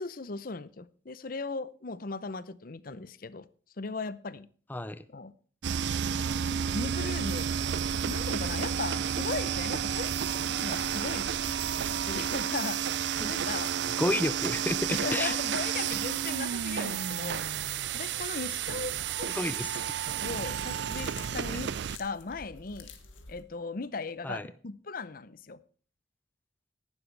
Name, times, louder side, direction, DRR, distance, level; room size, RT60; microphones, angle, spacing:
voice 1, 0.0-3.5 3.8-4.5 5.1-5.3 6.0-6.4 6.7-7.5 8.1-11.6 12.1-12.8 13.3-13.7 14.9-19.5 20.2-22.9 23.3-25.6, left 3 dB, 50° left, 0.7 m, -38 dB
voice 2, 4.7-5.0 13.2-13.3 14.0-15.3 19.3-19.7 24.2-24.5, left 1 dB, 10° left, 0.5 m, -30 dB
sound 1, 5.6-22.0, right 8 dB, 60° right, 0.4 m, -31 dB
sound 2, 20.5-23.4, left 4 dB, 85° left, 1.9 m, -49 dB
14.0 x 11.5 x 3.3 m
head